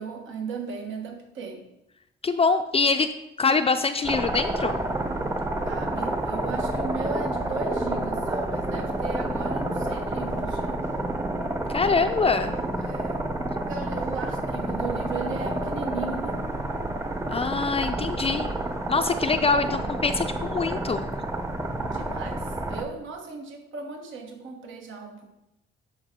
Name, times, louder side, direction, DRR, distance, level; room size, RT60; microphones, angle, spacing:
voice 1, 0.0-1.6 5.6-10.8 12.8-13.3 13.7-16.4 19.2-19.7 21.9-25.3, right 4 dB, 75° right, 2 dB, 1.3 m, -36 dB
voice 2, 2.2-3.1 3.4-4.8 11.7-12.5 17.3-18.5 18.9-21.0, left 4 dB, 30° left, 7 dB, 0.5 m, -24 dB
sound 1, 4.0-22.8, right 1 dB, 15° right, 0.7 m, -29 dB
11.5 x 4.7 x 3.7 m, 0.88 s
cardioid pair, 90°, 20 cm